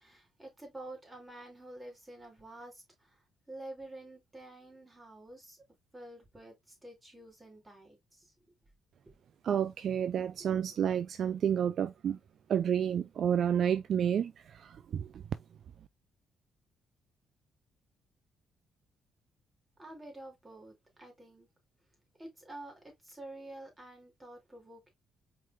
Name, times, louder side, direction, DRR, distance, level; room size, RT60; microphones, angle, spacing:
voice 1, 0.0-5.6 5.9-8.3 10.4-10.5 19.8-21.5 22.2-24.9, right 1 dB, 15° right, 2.6 m, -49 dB
voice 2, 9.4-12.2 12.5-15.2, right 8 dB, 60° right, 0.3 m, -30 dB
4.6 x 3.8 x 2.4 m
cardioid pair, 90°, 0 cm